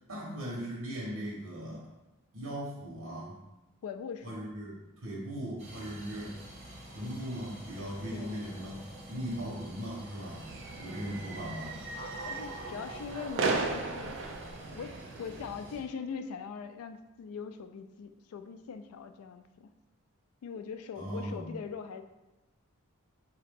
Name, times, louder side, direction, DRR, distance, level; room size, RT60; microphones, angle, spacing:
voice 1, 0.1-1.9 2.3-3.4 4.2-4.7 5.0-6.4 6.9-8.7 9.1-10.4 10.8-11.8 21.0-21.5, equal, 80° right, -5 dB, 1.2 m, -38 dB
voice 2, 3.8-4.5 8.1-8.3 12.2-14.4 14.7-19.7 20.4-22.0, left 6 dB, 80° left, 9 dB, 0.3 m, -41 dB
sound 1, 5.6-15.8, right 1 dB, 30° right, 0.9 m, -49 dB
sound 2, 7.5-16.3, right 1 dB, ahead, 1.0 m, -56 dB
sound 3, 10.2-15.5, right 3 dB, 55° right, 0.3 m, -36 dB
3.8 x 2.8 x 3.5 m, 1.0 s
head